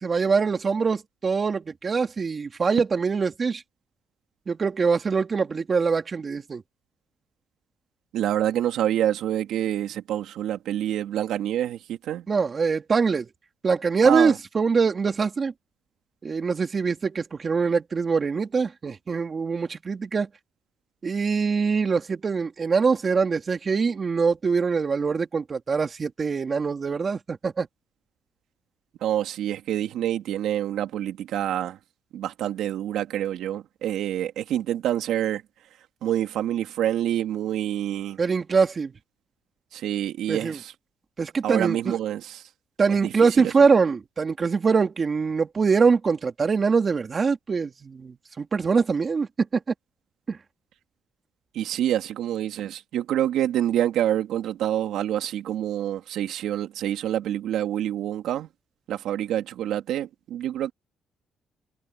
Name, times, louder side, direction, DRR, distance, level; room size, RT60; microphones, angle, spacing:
voice 1, 0.0-3.6 4.5-6.6 12.3-13.3 13.6-15.5 16.2-20.3 21.0-27.7 38.2-38.9 40.3-40.6 41.2-42.0 42.8-49.6 50.3-50.4, right 5 dB, 40° right, 2.8 m, -23 dB
voice 2, 8.1-12.3 14.0-14.4 29.0-31.8 32.1-35.4 36.0-38.2 39.7-40.7 41.4-42.5 42.9-43.5 51.5-58.5 58.9-60.7, right 11 dB, 80° right, 2.5 m, -27 dB
cardioid pair, 90°, 0 cm